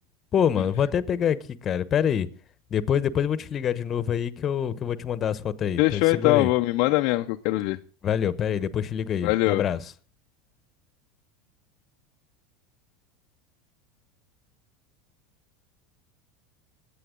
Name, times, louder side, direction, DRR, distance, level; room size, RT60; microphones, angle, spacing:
voice 1, 0.3-1.4 1.6-2.3 2.7-6.5 8.0-9.8, left 8 dB, 35° left, 1.0 m, -25 dB
voice 2, 5.8-7.8 9.2-9.6, left 19 dB, 60° left, 0.6 m, -22 dB
21.5 x 8.5 x 3.8 m
hypercardioid pair, 95°, 0 cm